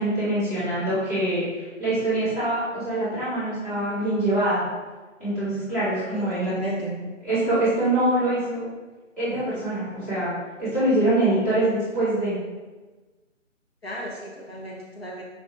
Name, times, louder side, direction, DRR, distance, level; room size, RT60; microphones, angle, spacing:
voice 1, 0.0-4.7 5.2-6.6 7.2-8.6 9.2-12.4, right 1 dB, 10° left, -14 dB, 1.0 m, -24 dB
voice 2, 6.1-7.0 13.8-15.2, right 1 dB, 50° left, -4 dB, 0.7 m, -33 dB
4.7 x 2.6 x 2.7 m, 1.2 s
figure-of-eight pair, 155°, 39 cm